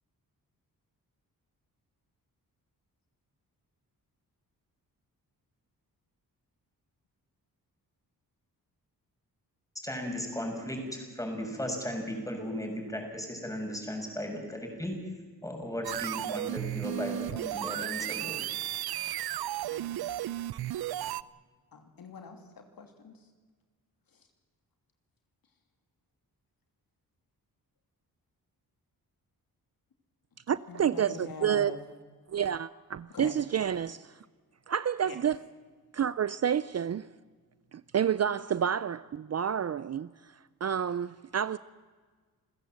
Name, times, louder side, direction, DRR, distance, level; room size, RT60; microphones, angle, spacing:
voice 1, 9.8-15.0 15.4-18.4, equal, 10° left, 6.9 m, -36 dB
sound 1, 15.8-21.2, right 14 dB, 85° right, 0.6 m, -34 dB
voice 2, 19.7-20.0 21.7-23.3 24.1-24.3 30.7-31.8 33.1-33.4 35.0-35.2, left 5 dB, 70° left, 2.9 m, -45 dB
voice 3, 30.5-31.7 32.3-34.1 34.7-35.4 35.9-37.1 37.7-40.1 40.6-41.6, right 8 dB, 45° right, 0.5 m, -29 dB
28.5 x 15.5 x 7.8 m
cardioid pair, 75°, 37 cm